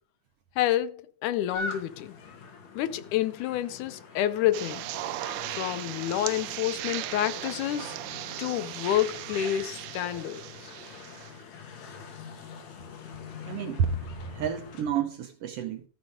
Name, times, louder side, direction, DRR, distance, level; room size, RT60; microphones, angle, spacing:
voice 1, 0.6-2.2 2.8-4.9 5.5-8.0 8.4-10.7, left 12 dB, 90° left, 2.2 m, -29 dB
sound 1, 1.5-14.8, left 4 dB, 70° left, 2.8 m, -44 dB
sound 2, 4.5-11.3, right 15 dB, 90° right, 2.1 m, -37 dB
voice 2, 13.5-14.0 14.3-15.8, right 7 dB, 70° right, 1.5 m, -30 dB
13.0 x 5.3 x 5.1 m
omnidirectional pair, 3.5 m